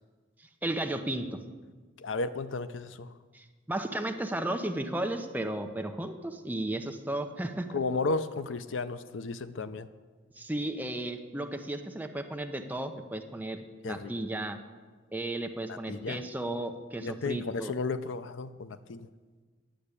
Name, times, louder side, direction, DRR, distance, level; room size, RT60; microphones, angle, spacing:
voice 1, 0.4-1.4 3.3-7.8 10.4-14.6 15.1-17.7, right 1 dB, 10° right, 6 dB, 0.7 m, -34 dB
voice 2, 2.0-3.1 7.7-9.9 13.8-14.1 15.7-16.2 17.0-19.1, left 3 dB, 80° left, 13 dB, 0.6 m, -33 dB
10.0 x 7.6 x 8.3 m, 1.4 s
head